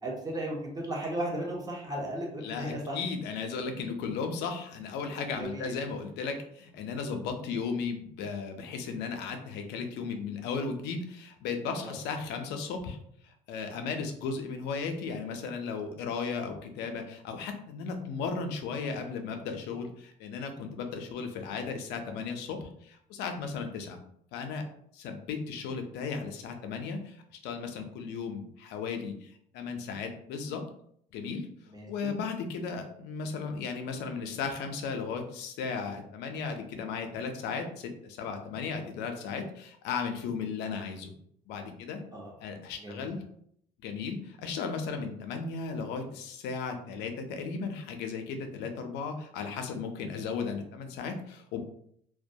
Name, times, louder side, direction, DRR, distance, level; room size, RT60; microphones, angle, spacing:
voice 1, 0.0-3.0 5.3-5.8 11.8-12.0 31.7-32.2 42.1-42.3 42.8-43.1, right 1 dB, 20° right, -2 dB, 0.7 m, -35 dB
voice 2, 2.4-13.0 13.2-24.0 24.3-24.7 24.9-27.2 27.4-30.6 31.1-31.5 31.9-41.1 41.5-42.0 42.4-43.2 43.8-51.6, left 5 dB, 90° left, 5 dB, 0.5 m, -35 dB
2.2 x 2.1 x 2.6 m, 0.68 s
cardioid pair, 110°, 17 cm